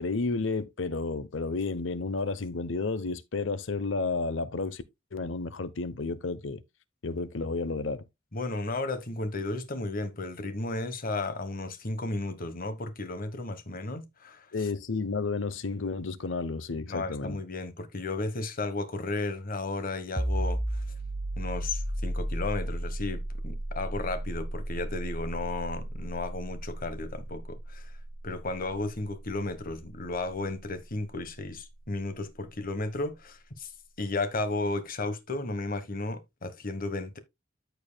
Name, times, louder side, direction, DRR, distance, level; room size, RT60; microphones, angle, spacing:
voice 1, 0.0-4.8 5.1-6.6 7.0-8.0 14.5-17.4, left 3 dB, 65° left, 0.7 m, -31 dB
voice 2, 8.3-14.5 16.9-20.8 21.4-27.9 28.2-33.7 34.0-37.2, left 2 dB, 45° left, 1.2 m, -34 dB
sound 1, 20.2-31.6, right 1 dB, 20° right, 0.8 m, -35 dB
14.0 x 4.7 x 2.2 m
head